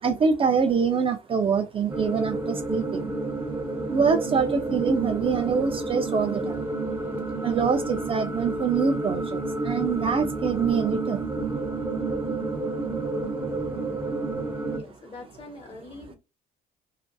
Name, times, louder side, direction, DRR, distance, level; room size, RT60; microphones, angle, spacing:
voice 1, 0.0-3.1 3.9-6.7 7.4-11.4 11.9-12.0 13.0-13.1 14.0-14.1, right 5 dB, 30° right, 0.4 m, -25 dB
sound 1, 1.9-14.8, right 2 dB, 10° right, 0.7 m, -30 dB
voice 2, 14.6-16.2, left 2 dB, 35° left, 1.0 m, -43 dB
2.5 x 2.4 x 2.2 m
cardioid pair, 110°, 17 cm